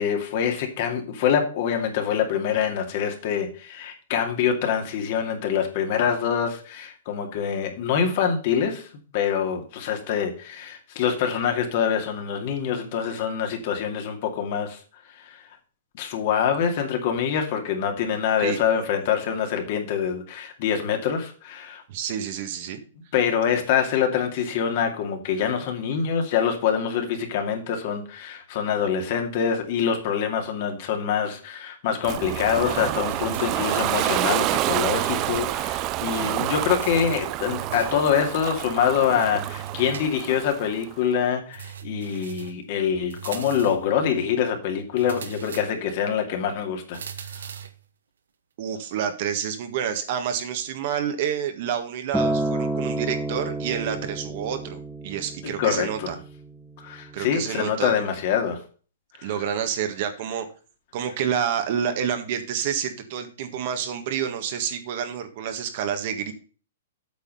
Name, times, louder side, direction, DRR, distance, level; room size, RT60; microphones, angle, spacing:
voice 1, 0.0-8.9 9.1-14.8 15.2-15.4 15.9-21.8 23.1-47.0 47.4-47.5 55.4-56.1 56.8-58.6 59.2-59.3, left 8 dB, 45° left, 4 dB, 2.2 m, -25 dB
voice 2, 21.9-22.8 48.6-56.1 57.1-57.9 59.2-60.4 60.9-66.3, right 8 dB, 45° right, 7 dB, 1.6 m, -28 dB
Ocean, 32.0-40.9, right 16 dB, 30° right, 0.4 m, -28 dB
sound 1, 33.1-34.1 34.6-35.5 35.8-35.9 36.8-38.1 39.2-40.5 41.5-42.6 43.1-43.9 45.0-46.0 46.9-47.8, right 8 dB, 85° right, 1.4 m, -39 dB
Acoustic guitar, 52.1-56.4 57.3-57.4, right 2 dB, ahead, 0.8 m, -29 dB
8.4 x 5.8 x 5.6 m, 0.38 s
hypercardioid pair, 155°, 0 cm